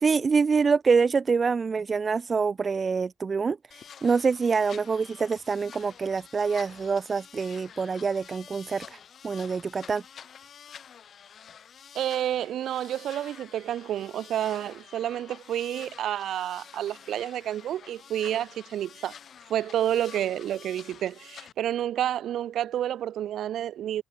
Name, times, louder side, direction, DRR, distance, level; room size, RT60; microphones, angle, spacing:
voice 1, 0.0-9.0 9.2-10.0, right 5 dB, 35° right, 0.4 m, -25 dB
sound 1, 3.7-21.5, left 8 dB, 55° left, 6.8 m, -49 dB
voice 2, 11.9-19.1 19.5-24.0, right 11 dB, 75° right, 0.8 m, -29 dB
cardioid pair, 90°, 0 cm